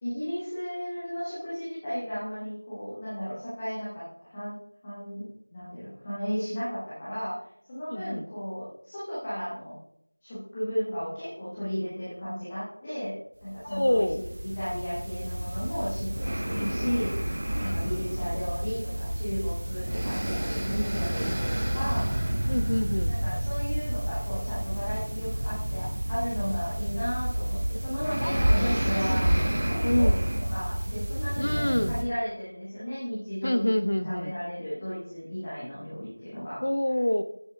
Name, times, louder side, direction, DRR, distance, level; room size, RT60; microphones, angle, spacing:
voice 1, 0.0-4.0 4.3-4.5 4.8-7.3 7.7-9.7 10.2-13.1 13.4-22.3 23.1-30.1 30.5-36.6, equal, 5° left, -12 dB, 1.2 m, -34 dB
voice 2, 7.9-8.3 13.7-14.3 16.6-16.9 17.6-18.0 22.5-23.2 28.2-28.6 29.8-30.1 31.4-31.9 33.4-34.3 36.6-37.2, left 1 dB, 30° left, 11 dB, 0.6 m, -27 dB
sound 1, 13.5-32.0, right 1 dB, 15° right, 0.6 m, -29 dB
14.0 x 7.9 x 3.5 m, 0.68 s
figure-of-eight pair, 180°, 0 cm